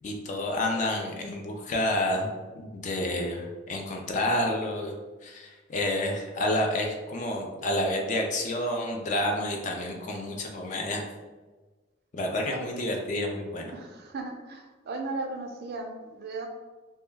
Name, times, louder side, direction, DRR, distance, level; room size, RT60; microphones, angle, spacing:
voice 1, 0.0-4.9 5.2-11.0 12.1-13.7, left 1 dB, 40° left, 1 dB, 0.3 m, -29 dB
voice 2, 13.7-16.5, right 3 dB, 50° right, 2 dB, 0.4 m, -36 dB
2.2 x 2.1 x 3.2 m, 1.3 s
head